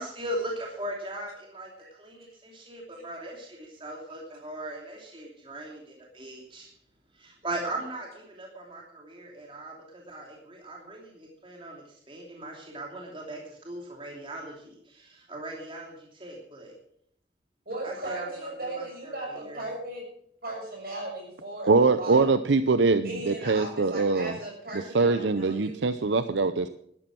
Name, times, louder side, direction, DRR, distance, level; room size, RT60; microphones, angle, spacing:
voice 1, 0.0-1.7 2.0-6.7 7.2-16.7 17.8-19.6, right 1 dB, 30° right, -1 dB, 2.9 m, -39 dB
voice 2, 17.6-20.0 20.4-22.3 23.0-25.9, right 2 dB, 55° right, 0 dB, 6.7 m, -37 dB
voice 3, 21.7-24.3 24.9-26.7, right 3 dB, 80° right, 12 dB, 0.6 m, -23 dB
13.0 x 11.5 x 6.1 m, 0.67 s
head